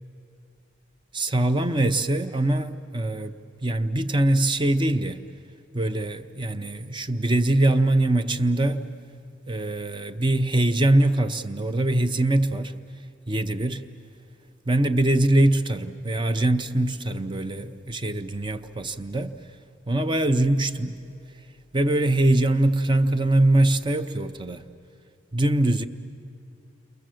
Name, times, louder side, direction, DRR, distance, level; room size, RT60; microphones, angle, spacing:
voice 1, 1.1-5.2 5.7-8.8 9.5-12.7 13.3-13.8 14.7-19.3 19.9-21.0 21.7-24.6 25.3-25.8, right 1 dB, 25° right, 0.7 m, -23 dB
29.5 x 23.0 x 7.7 m
head